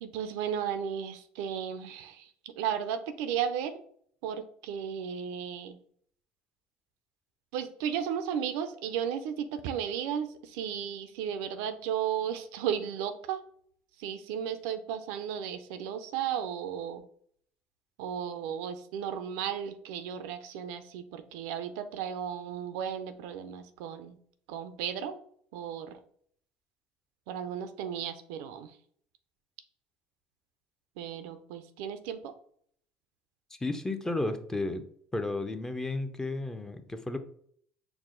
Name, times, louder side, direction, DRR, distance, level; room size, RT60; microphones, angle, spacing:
voice 1, 0.0-3.8 4.2-5.8 7.5-13.4 14.0-17.0 18.0-24.2 24.5-25.2 25.5-26.0 27.3-28.8 31.0-32.3, right 8 dB, 80° right, 10 dB, 0.4 m, -34 dB
voice 2, 33.6-34.8 35.1-37.2, left 2 dB, 10° left, 8 dB, 0.5 m, -33 dB
4.7 x 2.0 x 3.7 m, 0.62 s
supercardioid pair, 85°, 4 cm